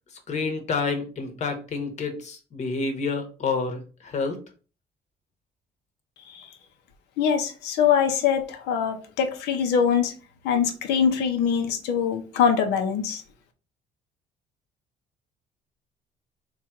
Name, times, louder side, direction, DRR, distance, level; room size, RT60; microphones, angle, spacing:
voice 1, 0.3-4.4, left 4 dB, 45° left, 5 dB, 1.1 m, -29 dB
voice 2, 7.2-10.1 10.4-13.2, left 7 dB, 85° left, 6 dB, 0.8 m, -23 dB
3.6 x 2.5 x 4.4 m, 0.36 s
cardioid pair, 110°, 17 cm